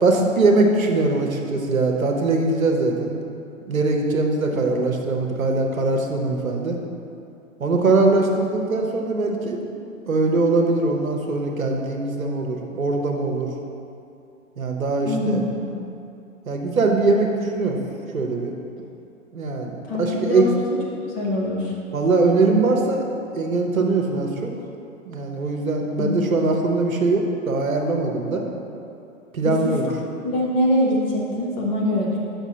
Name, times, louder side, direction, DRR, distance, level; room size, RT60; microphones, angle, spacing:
voice 1, 0.0-3.2 3.7-6.8 7.6-9.6 10.1-13.5 14.6-15.4 16.5-17.8 18.1-18.5 19.3-20.5 21.9-23.1 23.3-24.5 25.0-28.5 29.3-29.9, right 3 dB, 75° right, 2 dB, 0.9 m, -21 dB
voice 2, 15.1-15.7 19.9-20.6 21.1-21.7 26.0-26.5 29.4-29.6 30.2-32.2, left 1 dB, 15° left, -4 dB, 0.5 m, -23 dB
8.0 x 5.9 x 2.8 m, 2.7 s
figure-of-eight pair, 110°, 41 cm